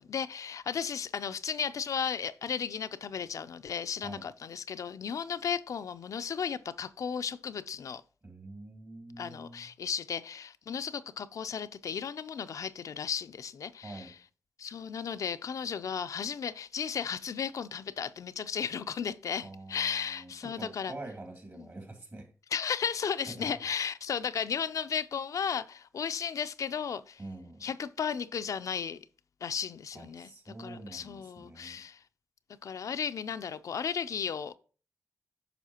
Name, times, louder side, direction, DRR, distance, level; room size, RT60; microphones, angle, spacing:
voice 1, 0.0-8.0 9.2-14.1 14.6-20.9 21.6-21.7 22.5-27.2 27.6-29.0 29.4-30.3 30.6-32.0 32.6-34.6, left 7 dB, 70° left, 0.4 m, -35 dB
voice 2, 8.2-9.7 13.8-14.1 19.4-22.3 22.8-22.9 23.3-23.5 27.2-27.6 29.9-31.8, right 2 dB, 45° right, 2.5 m, -46 dB
9.1 x 5.4 x 2.9 m
cardioid pair, 50°, 6 cm